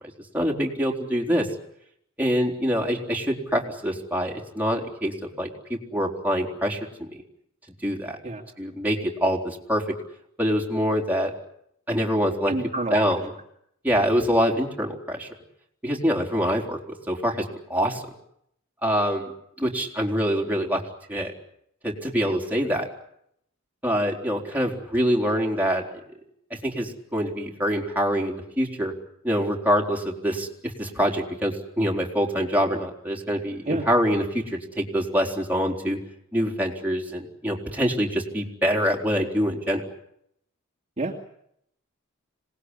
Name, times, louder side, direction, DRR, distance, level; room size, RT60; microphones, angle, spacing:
voice 1, 0.3-1.5 2.2-7.1 7.8-8.2 8.6-9.8 10.4-11.3 11.9-12.5 12.9-13.2 13.8-15.3 15.8-16.8 17.1-18.0 18.8-19.3 19.6-20.8 21.1-21.3 21.8-22.9 23.8-25.8 26.5-28.9 29.2-36.0 36.3-39.8, equal, 10° right, -1 dB, 4.0 m, -25 dB
voice 2, 12.5-13.2 33.7-33.9 41.0-41.2, right 2 dB, 35° right, 0 dB, 2.5 m, -28 dB
26.5 x 19.5 x 9.9 m, 0.75 s
head